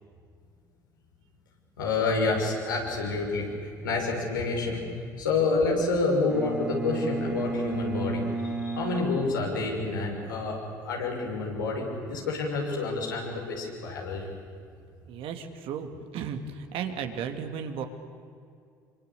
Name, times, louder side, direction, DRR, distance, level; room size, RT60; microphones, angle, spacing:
voice 1, 1.8-4.8 5.2-10.6 10.8-14.3, left 3 dB, 85° left, -1 dB, 6.4 m, -28 dB
Bowed string instrument, 6.3-10.1, right 3 dB, 10° right, 3.6 m, -33 dB
voice 2, 15.1-17.8, right 7 dB, 60° right, 6 dB, 2.8 m, -35 dB
26.5 x 25.0 x 8.6 m, 2.4 s
hypercardioid pair, 65°, 10 cm